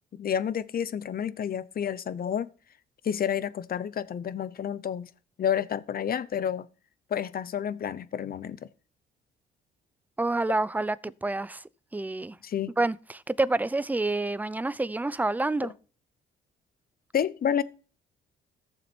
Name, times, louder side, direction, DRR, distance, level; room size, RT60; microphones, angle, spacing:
voice 1, 0.1-2.5 3.0-5.1 5.4-6.7 7.1-8.7 12.4-12.7 17.1-17.6, left 8 dB, 50° left, 0.8 m, -30 dB
voice 2, 10.2-11.6 11.9-12.4 12.8-15.7, right 2 dB, 10° right, 0.5 m, -28 dB
14.5 x 7.0 x 4.5 m
cardioid pair, 90°, 20 cm